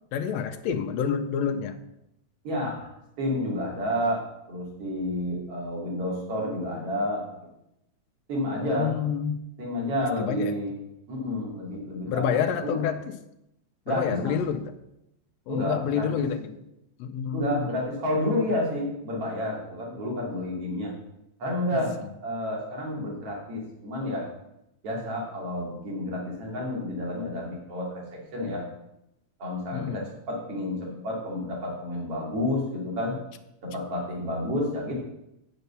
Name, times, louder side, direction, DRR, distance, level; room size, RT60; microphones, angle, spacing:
voice 1, 0.1-1.8 8.7-9.4 10.2-10.6 12.0-13.2 13.9-14.7 15.5-16.6 17.0-17.7 29.7-30.0, left 8 dB, 75° left, 6 dB, 1.7 m, -28 dB
voice 2, 2.4-2.9 3.2-7.5 8.3-8.9 9.6-10.8 11.1-12.8 13.9-14.4 15.5-16.3 17.3-20.9 21.4-21.9 22.2-24.3 24.8-28.6 29.4-33.2 33.6-34.9, left 1 dB, 55° right, -2 dB, 3.7 m, -30 dB
8.1 x 6.9 x 6.8 m, 0.85 s
omnidirectional pair, 3.3 m